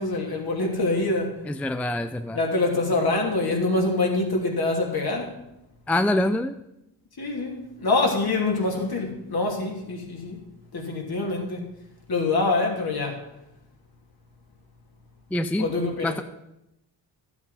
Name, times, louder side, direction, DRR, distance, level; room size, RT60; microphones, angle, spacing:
voice 1, 0.0-1.3 2.3-5.3 7.2-10.4 10.7-11.6 12.1-13.2 15.6-16.2, left 2 dB, 50° left, 1 dB, 3.0 m, -25 dB
voice 2, 1.4-2.4 5.9-6.5 15.3-15.7 16.0-16.2, left 1 dB, 5° left, 10 dB, 0.5 m, -25 dB
12.0 x 8.0 x 5.6 m, 0.88 s
cardioid pair, 65°, 47 cm